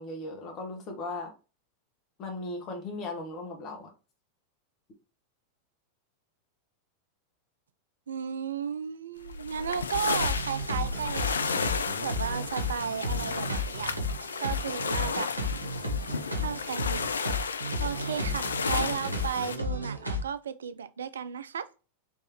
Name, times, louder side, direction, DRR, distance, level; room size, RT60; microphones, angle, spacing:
voice 1, 0.0-1.3 2.2-3.9, left 2 dB, 35° left, 1.2 m, -37 dB
voice 2, 8.1-14.0 14.4-15.6 16.3-17.2 17.4-21.7, right 7 dB, 65° right, 0.3 m, -34 dB
sound 1, 9.2-19.6, left 5 dB, 70° left, 0.3 m, -33 dB
sound 2, 10.1-20.2, left 1 dB, 85° right, 0.7 m, -33 dB
3.5 x 3.1 x 2.9 m
figure-of-eight pair, 90°, 0 cm